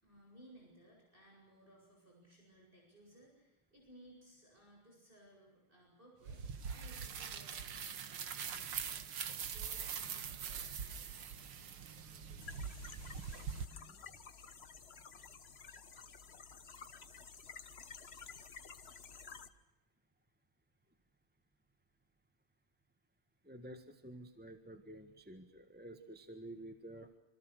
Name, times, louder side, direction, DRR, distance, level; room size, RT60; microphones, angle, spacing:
voice 1, 0.0-11.1, right 1 dB, 25° right, -2 dB, 8.1 m, -62 dB
sound 1, 6.3-13.7, right 7 dB, 90° right, 2.3 m, -43 dB
voice 2, 11.4-14.0 18.3-18.5 23.4-27.1, right 1 dB, 5° right, 7 dB, 1.3 m, -53 dB
sound 2, 12.4-19.5, left 5 dB, 35° left, 1.2 m, -53 dB
27.0 x 26.5 x 6.6 m, 1.0 s
omnidirectional pair, 2.3 m